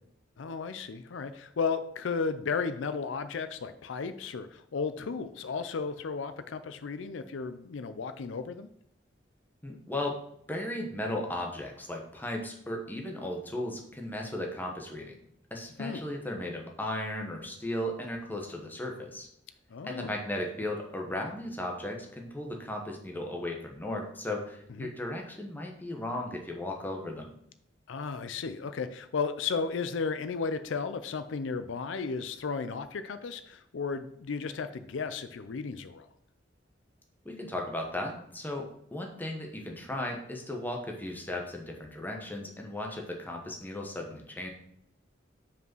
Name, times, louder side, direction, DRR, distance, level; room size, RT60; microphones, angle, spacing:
voice 1, 0.4-8.7 15.8-16.0 19.7-20.1 24.8-24.9 27.9-36.1, left 5 dB, 80° left, 11 dB, 0.5 m, -34 dB
voice 2, 9.6-10.2 10.5-15.2 15.5-19.3 19.9-27.3 37.2-44.5, left 1 dB, 10° left, 1 dB, 1.1 m, -36 dB
5.5 x 5.0 x 6.0 m, 0.72 s
head